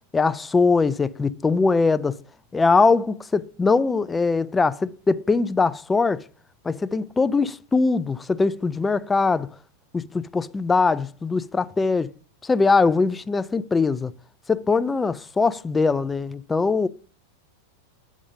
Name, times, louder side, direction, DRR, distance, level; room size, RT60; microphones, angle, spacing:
voice 1, 0.1-2.2 2.5-6.2 6.6-9.5 9.9-12.1 12.4-14.1 14.5-16.9, left 4 dB, 15° left, 0.4 m, -21 dB
8.4 x 3.7 x 5.3 m
hypercardioid pair, 95°, 0 cm